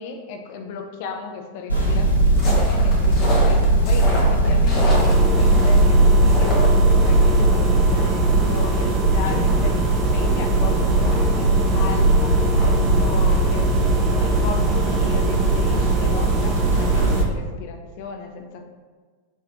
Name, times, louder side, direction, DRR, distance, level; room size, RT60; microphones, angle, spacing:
voice 1, 0.0-9.8 10.1-13.8 14.2-18.6, left 4 dB, 50° left, 4 dB, 0.4 m, -35 dB
sound 1, 1.7-17.2, right 2 dB, 90° right, 0.7 m, -18 dB
sound 2, 2.4-7.4 7.7-10.4 10.7-10.8 11.0-15.1 15.5-16.8 17.1-17.2, left 1 dB, 30° left, 0.9 m, -32 dB
sound 3, 4.9-17.2, right 3 dB, 20° right, 0.4 m, -27 dB
4.3 x 3.1 x 2.4 m, 1.4 s
figure-of-eight pair, 90°, 0 cm